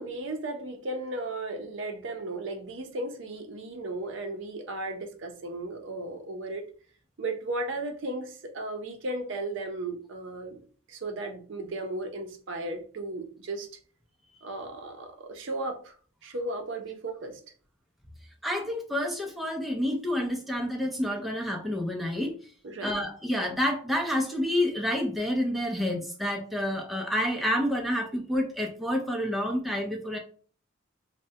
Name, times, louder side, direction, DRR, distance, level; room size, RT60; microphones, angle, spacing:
voice 1, 0.0-6.7 7.2-10.6 10.9-13.7 14.4-15.9 16.2-17.4 22.6-22.9, right 2 dB, 60° right, 5 dB, 0.5 m, -35 dB
voice 2, 18.4-22.3 22.8-30.2, left 1 dB, ahead, 1 dB, 0.4 m, -29 dB
3.2 x 2.1 x 2.7 m, 0.42 s
head